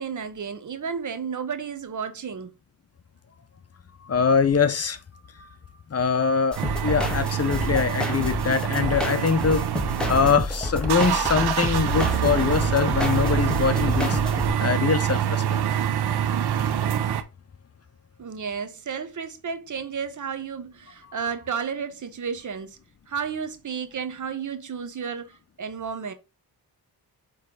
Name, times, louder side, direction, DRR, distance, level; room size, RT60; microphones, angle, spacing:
voice 1, 0.0-2.5 18.2-22.8 23.1-26.1, right 6 dB, 50° right, 1.0 m, -32 dB
voice 2, 4.0-5.0 5.4-5.5 5.9-9.6 10.1-14.2 14.6-15.6, left 6 dB, 40° left, 0.8 m, -23 dB
sound 1, 6.5-14.5, left 1 dB, ahead, 1.6 m, -29 dB
sound 2, 6.6-10.4 10.7-17.2, right 9 dB, 80° right, 0.8 m, -26 dB
7.6 x 3.4 x 3.9 m
cardioid pair, 85°, 39 cm